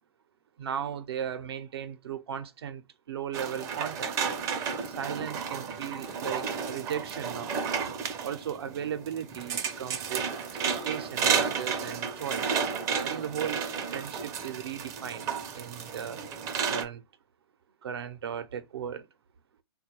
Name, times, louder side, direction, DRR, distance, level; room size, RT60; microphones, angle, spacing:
voice 1, 0.6-4.2 4.9-7.6 8.2-10.3 10.6-12.6 13.0-13.7 13.9-16.2 16.7-17.0 17.8-19.1, right 8 dB, 70° right, 0.5 m, -36 dB
sound 1, 3.3-16.8, right 6 dB, 25° right, 0.4 m, -32 dB
3.7 x 2.2 x 2.8 m
hypercardioid pair, 125°, 13 cm